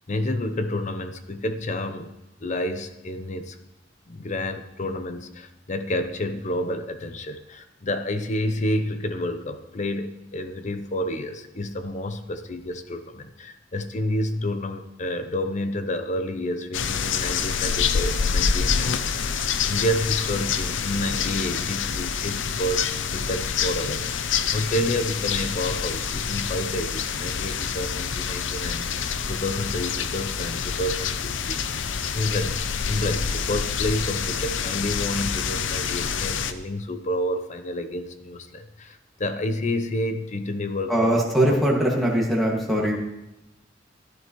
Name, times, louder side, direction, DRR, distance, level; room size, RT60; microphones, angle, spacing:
voice 1, 0.1-2.1 2.4-3.6 4.1-22.8 23.1-31.9 32.1-32.6 32.9-41.1 41.5-41.6 42.9-43.0, left 1 dB, 40° left, 9 dB, 0.7 m, -29 dB
sound 1, 16.7-36.5, left 6 dB, 85° left, 0.6 m, -27 dB
voice 2, 40.9-43.0, right 1 dB, ahead, -3 dB, 1.9 m, -21 dB
14.0 x 12.5 x 3.1 m, 0.93 s
head